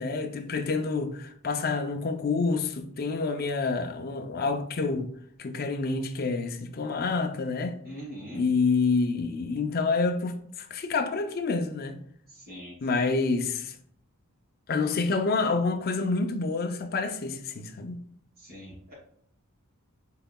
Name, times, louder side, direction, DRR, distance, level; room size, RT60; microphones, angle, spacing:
voice 1, 0.0-5.1 5.4-7.8 8.3-12.0 12.8-13.7 14.7-18.0, left 4 dB, 45° left, 0.5 m, -28 dB
voice 2, 7.8-8.4 12.3-13.1 18.4-18.9, equal, 45° right, 1.9 m, -43 dB
5.6 x 3.9 x 2.2 m
head